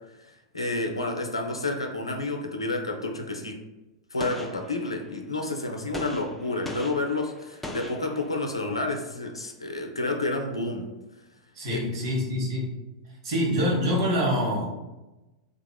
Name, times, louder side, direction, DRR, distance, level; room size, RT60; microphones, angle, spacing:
voice 1, 0.5-3.6 4.1-10.9 11.7-11.8, left 2 dB, 85° left, 3 dB, 0.4 m, -30 dB
Gunshot gunfire, 4.2-5.3 5.9-8.7, left 1 dB, 5° left, 0.4 m, -40 dB
voice 2, 11.5-12.7 13.2-14.7, equal, 60° right, -3 dB, 1.0 m, -25 dB
2.8 x 2.3 x 2.3 m, 1.0 s
figure-of-eight pair, 95°, 3 cm